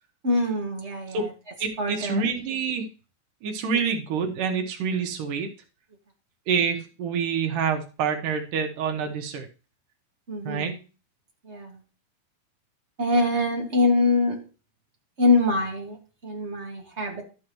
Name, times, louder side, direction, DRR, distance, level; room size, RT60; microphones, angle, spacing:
voice 1, 0.2-1.3 1.8-2.2 3.7-3.8 10.3-10.8 11.4-11.8 13.0-14.4 15.2-16.0 16.2-17.2, left 2 dB, 25° right, 0 dB, 1.8 m, -24 dB
voice 2, 1.6-2.9 3.4-5.5 6.5-9.5 10.4-10.7, right 6 dB, 90° right, 4 dB, 2.9 m, -27 dB
12.0 x 8.4 x 3.1 m, 0.34 s
omnidirectional pair, 3.6 m